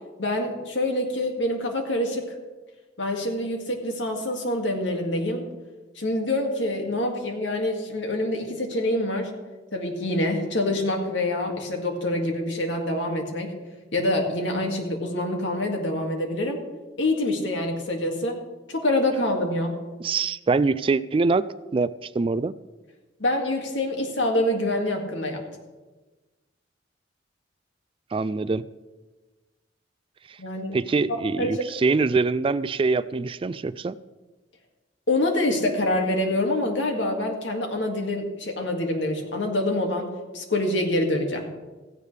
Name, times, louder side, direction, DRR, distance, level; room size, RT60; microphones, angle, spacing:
voice 1, 0.2-2.2 3.0-5.4 6.0-9.3 9.7-13.5 13.9-16.6 17.0-18.4 18.7-19.8 23.2-25.4 30.4-30.8 31.4-31.7 35.1-40.1 40.3-41.5, left 1 dB, 80° left, 2 dB, 2.2 m, -26 dB
voice 2, 20.0-22.5 28.1-28.7 30.3-30.4 30.7-34.0, right 4 dB, 30° right, 16 dB, 0.3 m, -24 dB
16.0 x 15.5 x 3.4 m, 1.2 s
head